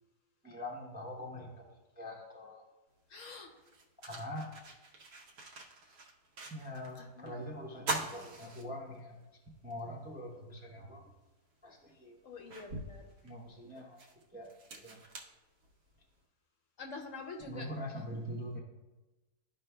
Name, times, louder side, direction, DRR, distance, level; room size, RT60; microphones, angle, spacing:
voice 1, 0.4-2.6 4.0-4.6 6.5-9.3 9.6-11.1 11.6-12.2 13.2-14.0 14.3-14.5 14.8-15.0 17.4-18.6, left 1 dB, 10° right, -1 dB, 0.4 m, -43 dB
sound 1, 3.0-3.1 3.6-7.0 7.3-7.4 7.8-9.2 9.7-9.8 11.2-11.3 11.9-16.1, right 2 dB, 70° right, 1.3 m, -43 dB
voice 2, 3.1-3.5 7.0-7.3 12.2-13.1 16.8-17.7, left 4 dB, 60° left, 3 dB, 0.9 m, -46 dB
12.5 x 5.2 x 2.2 m, 1.1 s
omnidirectional pair, 1.8 m